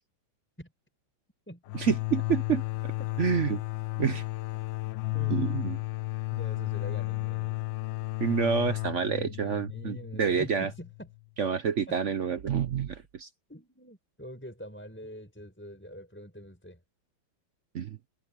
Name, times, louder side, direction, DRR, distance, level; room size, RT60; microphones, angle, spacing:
sound 1, 1.7-11.2, left 22 dB, 75° left, 1.3 m, -33 dB
voice 1, 1.7-2.6 3.2-3.6 4.0-4.2 5.3-5.8 8.2-10.7 11.4-13.3 17.7-18.0, right 7 dB, 60° right, 0.8 m, -28 dB
voice 2, 5.1-5.5 6.3-7.6 9.1-11.1 11.9-12.0 13.5-16.8, equal, 5° left, 5.9 m, -44 dB
omnidirectional pair, 2.2 m